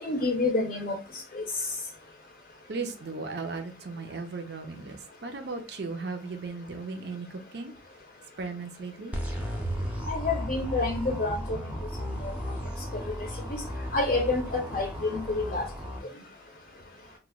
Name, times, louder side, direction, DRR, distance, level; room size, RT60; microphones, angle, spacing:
voice 1, 0.0-0.9 1.3-1.4 10.1-11.6 12.0-12.3 13.1-13.6 13.9-15.7, left 3 dB, 45° left, 0.6 m, -28 dB
voice 2, 2.7-7.7 8.4-9.1 9.7-9.9 16.8-17.1, right 3 dB, 60° right, 0.5 m, -36 dB
sound 1, 9.1-16.0, equal, 10° right, 0.6 m, -35 dB
2.9 x 2.2 x 3.5 m
head